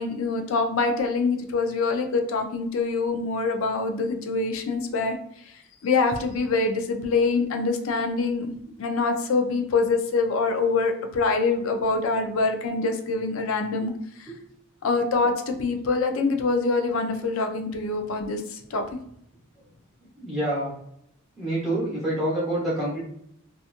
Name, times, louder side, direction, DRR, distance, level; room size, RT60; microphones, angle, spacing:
voice 1, 0.0-5.2 5.8-8.5 8.8-13.9 14.2-14.3 14.8-18.8, left 3 dB, 70° left, 5 dB, 0.4 m, -25 dB
voice 2, 20.2-20.7 21.3-23.0, right 1 dB, ahead, -10 dB, 1.1 m, -27 dB
2.8 x 2.4 x 2.4 m, 0.71 s
head